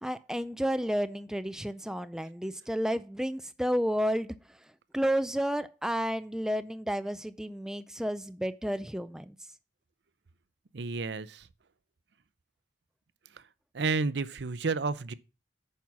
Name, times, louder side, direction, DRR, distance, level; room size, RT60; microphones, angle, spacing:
voice 1, 0.0-4.3 4.9-9.4, equal, 5° right, 0.4 m, -31 dB
voice 2, 10.7-11.4 13.7-15.1, right 4 dB, 65° right, 0.6 m, -31 dB
9.3 x 5.6 x 5.9 m
head